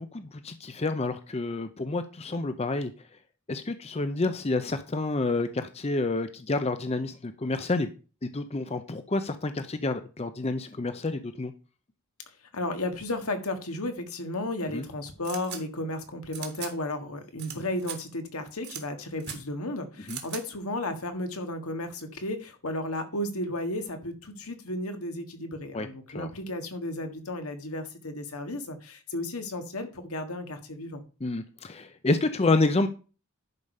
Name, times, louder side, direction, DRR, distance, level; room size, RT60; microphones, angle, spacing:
voice 1, 0.0-2.9 3.5-7.9 8.3-11.5 14.7-14.8 20.1-20.2 25.7-26.3 31.2-32.9, left 2 dB, 30° left, 0.5 m, -29 dB
voice 2, 12.5-31.0, left 1 dB, 80° left, 1.7 m, -34 dB
sound 1, 15.2-15.6 16.3-16.7 17.4-17.5 17.8-18.0 18.6-18.8 19.2-19.4 20.1-20.4, right 10 dB, 50° right, 1.7 m, -38 dB
10.5 x 5.1 x 5.4 m
head